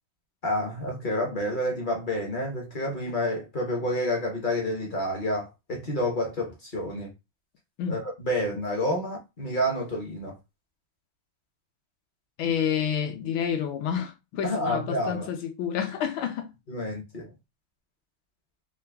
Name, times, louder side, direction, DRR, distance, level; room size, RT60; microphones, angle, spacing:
voice 1, 0.4-7.1 7.9-10.4 14.4-15.3 16.7-17.3, left 1 dB, 45° left, 0.6 m, -29 dB
voice 2, 12.4-16.5, left 8 dB, 75° left, 1.5 m, -29 dB
3.8 x 2.2 x 3.4 m
omnidirectional pair, 2.3 m